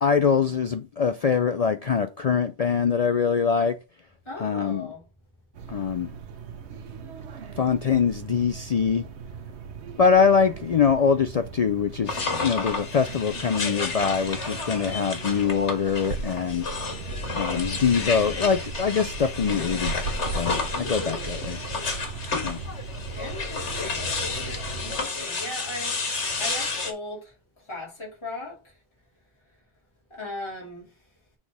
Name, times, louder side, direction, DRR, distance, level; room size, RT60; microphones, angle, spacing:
voice 1, 0.0-3.7 4.4-4.9 5.7-6.1 7.6-9.0 10.0-16.7 17.3-20.0 20.3-21.6 22.4-22.6, left 6 dB, 60° left, 0.4 m, -23 dB
voice 2, 4.2-5.0 20.7-21.4 23.2-24.2 24.8-28.6 30.1-30.9, left 2 dB, 25° left, 2.4 m, -38 dB
sound 1, 5.5-25.0, right 4 dB, 75° right, 1.1 m, -37 dB
sound 2, 12.1-26.9, left 4 dB, 85° left, 1.7 m, -31 dB
6.1 x 3.7 x 4.8 m
omnidirectional pair, 1.2 m